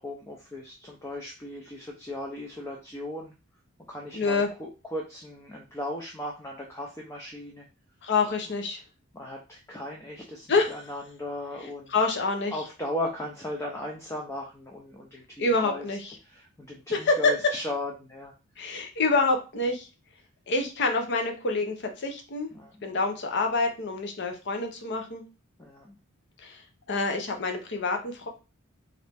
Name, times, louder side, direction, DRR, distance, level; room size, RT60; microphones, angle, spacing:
voice 1, 0.0-3.3 3.9-7.7 9.1-11.9 12.5-18.7 22.5-22.9 25.6-26.0, left 1 dB, 15° left, -1 dB, 0.5 m, -37 dB
voice 2, 4.1-4.5 8.0-8.8 10.5-10.7 11.9-12.5 15.4-16.0 16.9-17.3 18.6-19.9 20.5-22.5 22.8-25.2 26.4-26.6 26.9-28.3, left 3 dB, 55° left, 4 dB, 0.7 m, -26 dB
3.1 x 2.6 x 3.3 m, 0.31 s
head